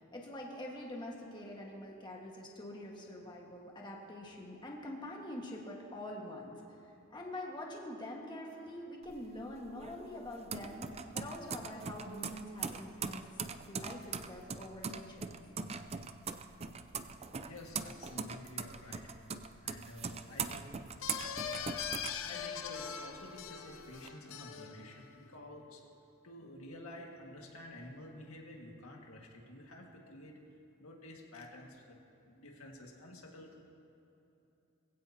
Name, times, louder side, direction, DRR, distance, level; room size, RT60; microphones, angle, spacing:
voice 1, 0.0-6.6 7.1-13.2 13.7-15.4, left 1 dB, 20° left, -2 dB, 1.6 m, -45 dB
sound 1, 9.0-22.9 23.2-24.1, right 5 dB, 30° right, 0.5 m, -41 dB
voice 2, 17.5-19.3 19.6-20.7 22.2-25.8 26.2-30.4 30.8-32.0 32.2-33.6, left 1 dB, 85° left, 0 dB, 1.9 m, -50 dB
sound 2, 21.0-25.2, left 7 dB, 70° left, 0.7 m, -41 dB
21.5 x 16.0 x 2.9 m, 2.9 s
head